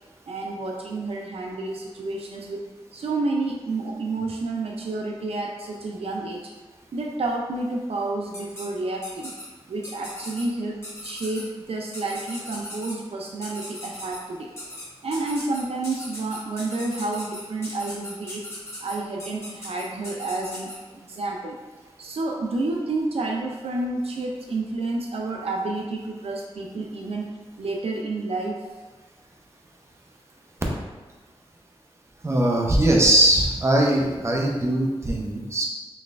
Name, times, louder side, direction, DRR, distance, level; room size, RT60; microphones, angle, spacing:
voice 1, 0.3-2.6 2.9-6.5 6.9-9.3 9.7-14.5 15.0-18.4 18.8-20.8 21.1-21.6 22.0-27.3 27.6-28.6, right 2 dB, 70° right, 0 dB, 0.4 m, -30 dB
sound 1, 8.3-8.6 9.0-9.4 9.8-10.4 10.8-11.4 11.9-12.9 13.4-14.2 14.6-14.8 15.1-20.8, left 1 dB, 25° left, 1.2 m, -38 dB
voice 2, 32.2-35.6, right 1 dB, 25° right, -1 dB, 0.7 m, -20 dB
4.0 x 3.1 x 2.5 m, 1.3 s
wide cardioid pair, 80°, 10 cm